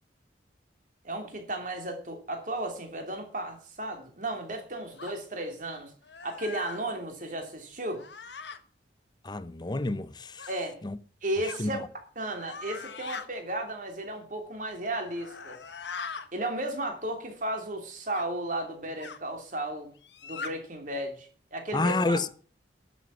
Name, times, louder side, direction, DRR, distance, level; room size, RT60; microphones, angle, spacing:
voice 1, 1.0-5.9 6.2-8.0 10.5-10.8 11.2-11.8 12.1-15.6 16.3-19.9 20.2-22.3, right 1 dB, 45° right, 3.2 m, -34 dB
sound 1, 5.0-5.2 6.0-6.8 7.9-8.6 10.4-10.5 11.4-11.6 12.3-13.3 15.0-16.3 18.1-18.3 19.0-19.2 20.0-20.5, left 5 dB, 75° left, 1.3 m, -41 dB
voice 2, 9.2-10.5 10.8-11.0 11.6-11.8 21.7-22.3, left 2 dB, 25° left, 0.6 m, -29 dB
12.0 x 7.3 x 7.1 m
head